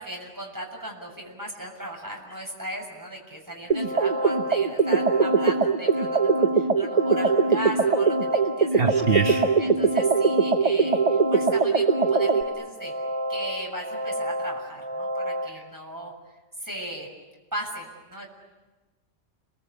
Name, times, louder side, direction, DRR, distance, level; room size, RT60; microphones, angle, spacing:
voice 1, 0.0-9.1 9.6-12.9 13.3-16.1 16.6-17.1 17.5-18.3, equal, 15° right, -1 dB, 6.8 m, -37 dB
sound 1, 3.7-12.4, right 4 dB, 35° right, 1.1 m, -21 dB
sound 2, 3.7-15.5, equal, 75° right, 3.0 m, -31 dB
voice 2, 8.7-9.4, right 5 dB, 55° right, 4 dB, 1.4 m, -24 dB
30.0 x 23.0 x 8.6 m, 1.2 s
omnidirectional pair, 1.2 m